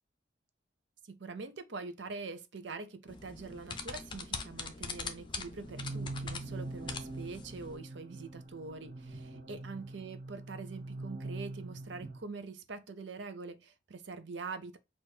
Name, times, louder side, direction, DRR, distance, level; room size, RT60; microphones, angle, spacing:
voice 1, 1.0-14.8, right 4 dB, 65° right, 0.6 m, -44 dB
sound 1, 3.1-7.8, left 4 dB, 25° left, 0.6 m, -42 dB
sound 2, 5.6-12.2, right 2 dB, 40° right, 1.3 m, -43 dB
6.2 x 2.6 x 3.2 m
head